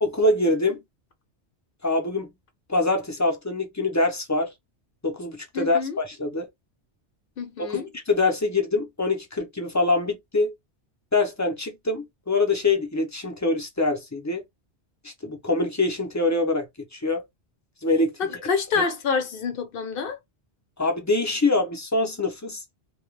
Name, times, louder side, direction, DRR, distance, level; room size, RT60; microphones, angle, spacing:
voice 1, 0.0-0.8 1.8-2.3 2.7-4.5 5.0-6.5 7.7-10.5 11.1-14.4 15.0-16.7 16.9-17.2 17.8-18.1 18.8-18.9 20.8-22.6, left 2 dB, 25° left, 0.3 m, -24 dB
voice 2, 5.5-6.0 7.4-7.9 18.2-20.2, left 5 dB, 60° left, 0.8 m, -27 dB
2.2 x 2.2 x 3.1 m
omnidirectional pair, 1.2 m